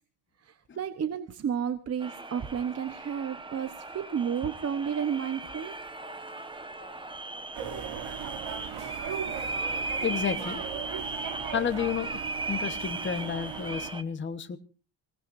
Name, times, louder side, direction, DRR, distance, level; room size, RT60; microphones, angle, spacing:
voice 1, 0.4-5.7, right 8 dB, 30° right, 10 dB, 1.0 m, -32 dB
sound 1, 2.0-14.0, right 3 dB, 10° right, 1.2 m, -37 dB
sound 2, 7.5-13.9, right 9 dB, 80° right, 3.1 m, -38 dB
voice 2, 10.0-10.6 11.5-12.2 12.5-14.6, left 7 dB, 25° left, 8 dB, 1.2 m, -31 dB
26.5 x 18.5 x 2.6 m, 0.37 s
cardioid pair, 180°, 47 cm